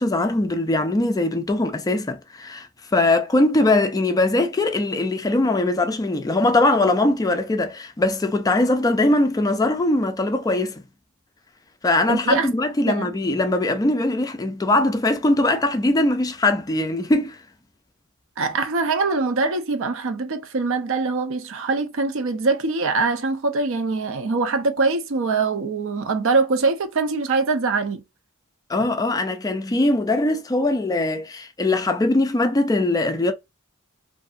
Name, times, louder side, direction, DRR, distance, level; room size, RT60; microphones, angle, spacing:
voice 1, 0.0-10.8 11.8-17.4 28.7-33.3, left 2 dB, 15° left, 0.3 m, -21 dB
voice 2, 12.1-12.5 12.8-13.1 18.4-28.0, right 3 dB, 65° right, 0.5 m, -23 dB
2.6 x 2.3 x 2.5 m
head